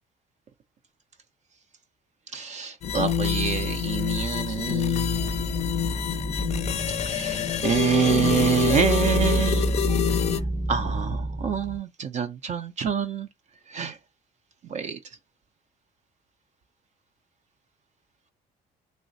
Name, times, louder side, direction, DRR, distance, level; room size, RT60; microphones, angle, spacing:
voice 1, 2.3-5.4 7.1-9.7 10.7-13.3 13.7-14.0 14.7-15.0, right 7 dB, 45° right, 0.4 m, -26 dB
sound 1, 2.8-10.4, left 8 dB, 40° left, 0.4 m, -26 dB
sound 2, 5.1-11.8, right 1 dB, 5° left, 0.7 m, -31 dB
3.2 x 3.0 x 2.6 m
cardioid pair, 110°, 17 cm